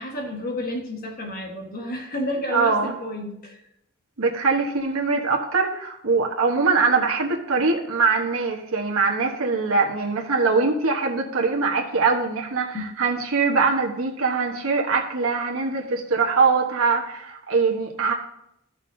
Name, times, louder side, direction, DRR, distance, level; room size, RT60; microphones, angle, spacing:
voice 1, 0.0-3.6 12.7-12.9, left 1 dB, 40° left, 1 dB, 1.4 m, -31 dB
voice 2, 2.5-2.9 4.2-18.1, right 4 dB, 85° right, 0 dB, 1.2 m, -22 dB
13.5 x 6.2 x 2.7 m, 0.81 s
head